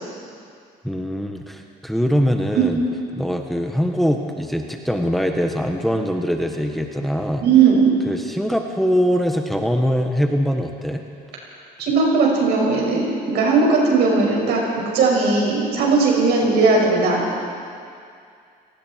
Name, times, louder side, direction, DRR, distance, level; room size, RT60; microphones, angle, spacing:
voice 1, 0.8-2.8 3.1-7.4 8.1-11.0, equal, ahead, 3 dB, 1.5 m, -22 dB
voice 2, 7.4-8.0 11.8-14.6 14.9-17.4, right 4 dB, 75° right, -2 dB, 6.5 m, -17 dB
30.0 x 18.5 x 4.7 m, 2.3 s
cardioid pair, 110°, 17 cm